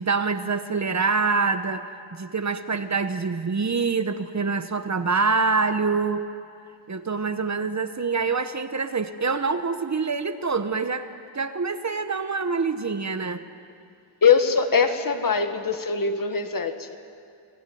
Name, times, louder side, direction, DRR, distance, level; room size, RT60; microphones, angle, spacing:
voice 1, 0.0-1.9 2.1-6.2 6.9-11.1 11.3-13.4, right 4 dB, 35° right, 9 dB, 1.1 m, -25 dB
voice 2, 14.2-17.0, left 6 dB, 45° left, 7 dB, 1.7 m, -22 dB
28.0 x 20.0 x 9.4 m, 2.4 s
wide cardioid pair, 125°, 48 cm